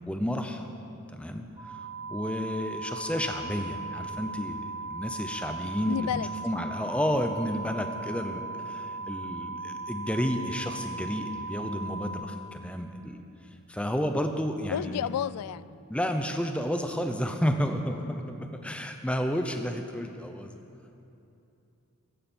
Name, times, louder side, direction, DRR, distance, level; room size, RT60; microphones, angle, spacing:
voice 1, 0.1-0.7 1.1-1.8 2.1-13.2 13.7-15.1 15.9-20.5, equal, 5° left, 5 dB, 0.7 m, -31 dB
sound 1, 1.6-12.1, right 3 dB, 25° right, 2.1 m, -38 dB
voice 2, 5.9-6.3 14.7-15.7, left 9 dB, 90° left, 18 dB, 0.3 m, -31 dB
15.5 x 14.5 x 4.5 m, 2.8 s
head